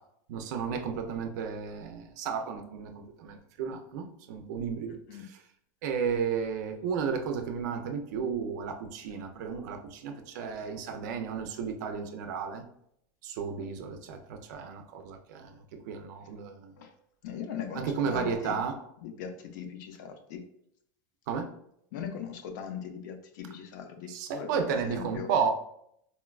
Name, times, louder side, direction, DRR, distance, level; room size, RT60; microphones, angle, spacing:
voice 1, 0.3-5.0 5.8-12.6 13.2-16.7 17.8-18.7 21.3-21.5 24.1-25.5, right 6 dB, 60° right, 6 dB, 0.5 m, -33 dB
voice 2, 17.2-18.6 19.0-20.4 21.9-25.3, left 8 dB, 65° left, 6 dB, 0.5 m, -40 dB
4.1 x 2.2 x 2.3 m, 0.73 s
supercardioid pair, 160°, 11 cm